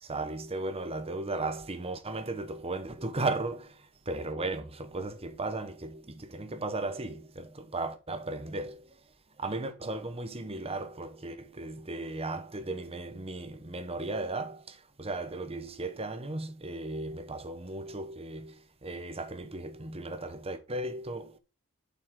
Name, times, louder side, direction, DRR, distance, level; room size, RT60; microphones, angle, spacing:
voice 1, 0.0-9.0 9.4-21.4, right 2 dB, 25° right, 1.0 m, -36 dB
7.4 x 5.7 x 4.6 m
head